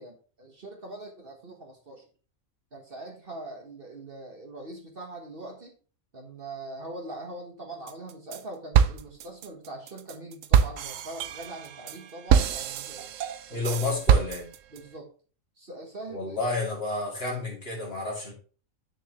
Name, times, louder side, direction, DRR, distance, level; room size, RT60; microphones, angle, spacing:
voice 1, 0.0-2.0 2.7-5.7 6.1-13.1 13.5-13.8 14.7-15.1 15.6-16.4, right 2 dB, 40° right, 2 dB, 1.5 m, -42 dB
sound 1, 7.9-8.4 8.7-14.8, right 8 dB, 70° right, 0.9 m, -25 dB
voice 2, 13.5-14.5 16.1-18.3, left 3 dB, 45° left, -3 dB, 2.9 m, -30 dB
9.0 x 6.6 x 3.1 m, 0.38 s
omnidirectional pair, 1.5 m